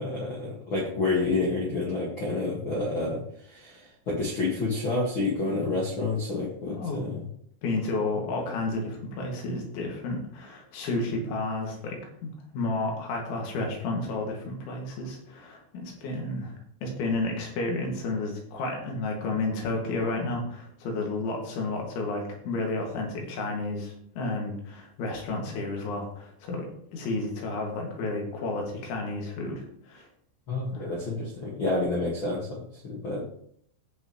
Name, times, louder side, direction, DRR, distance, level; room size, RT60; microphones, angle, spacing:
voice 1, 0.0-7.2 30.5-33.2, left 3 dB, 60° left, -3 dB, 1.2 m, -29 dB
voice 2, 6.7-7.0 7.6-16.5 16.8-26.7 26.9-30.1 30.7-30.9, left 2 dB, 80° left, 0 dB, 4.5 m, -31 dB
18.0 x 6.3 x 3.1 m, 0.67 s
omnidirectional pair, 5.2 m